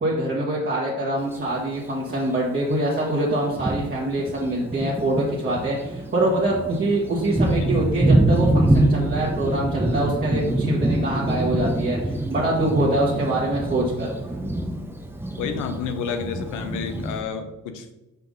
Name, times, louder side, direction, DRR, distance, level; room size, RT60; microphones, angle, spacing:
voice 1, 0.0-14.1, right 1 dB, 30° right, -5 dB, 1.6 m, -24 dB
Thunder, 1.2-1.3 2.3-2.4 3.0-3.1 3.4-17.2, right 1 dB, 10° right, 0.7 m, -25 dB
voice 2, 15.4-17.9, left 6 dB, 90° left, 8 dB, 0.8 m, -30 dB
5.8 x 4.9 x 3.8 m, 0.95 s
cardioid pair, 90°, 30 cm